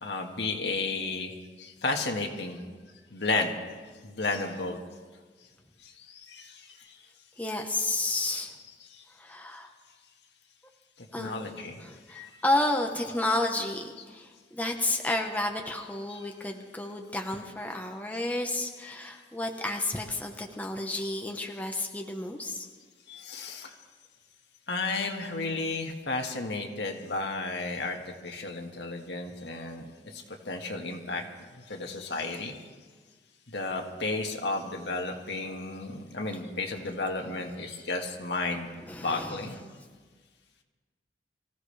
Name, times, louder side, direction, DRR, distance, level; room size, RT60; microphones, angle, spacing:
voice 1, 0.0-1.3 1.6-2.6 3.1-3.5 4.0-4.8 5.8-6.7 8.9-9.0 11.2-11.8 12.1-12.3 14.0-14.1 16.1-16.3 18.8-19.0 23.1-23.8 24.7-28.0 28.2-31.2 31.7-32.6 33.5-38.7 39.0-39.6, left 3 dB, 75° left, 2 dB, 1.8 m, -33 dB
voice 2, 7.4-8.6 9.2-9.7 11.1-22.7 38.8-39.6, left 2 dB, 10° left, 2 dB, 1.1 m, -31 dB
25.0 x 15.5 x 3.4 m, 1.4 s
head